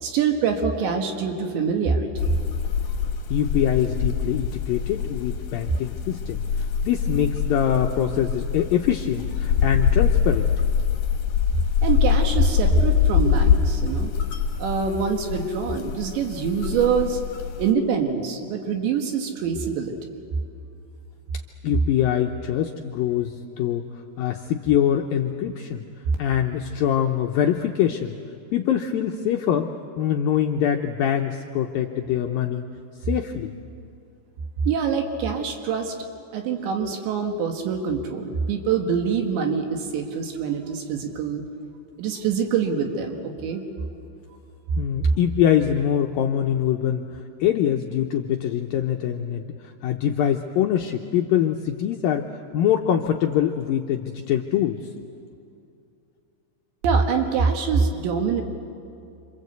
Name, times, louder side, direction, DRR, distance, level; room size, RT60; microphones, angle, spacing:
voice 1, 0.0-2.3 11.8-14.1 14.6-17.2 17.6-20.0 34.7-35.9 36.3-41.4 42.0-43.6 45.1-45.2 56.8-58.4, right 6 dB, 75° right, 4 dB, 3.9 m, -24 dB
sound 1, 2.2-17.7, left 7 dB, 60° left, 2.3 m, -24 dB
voice 2, 3.3-6.4 6.8-10.5 21.6-23.9 24.2-25.8 26.2-28.2 28.5-29.7 30.0-32.6 33.0-33.5 44.8-47.0 47.4-52.3 52.5-54.8, left 10 dB, 85° left, 3 dB, 2.0 m, -24 dB
27.5 x 26.5 x 8.1 m, 2.6 s
omnidirectional pair, 5.3 m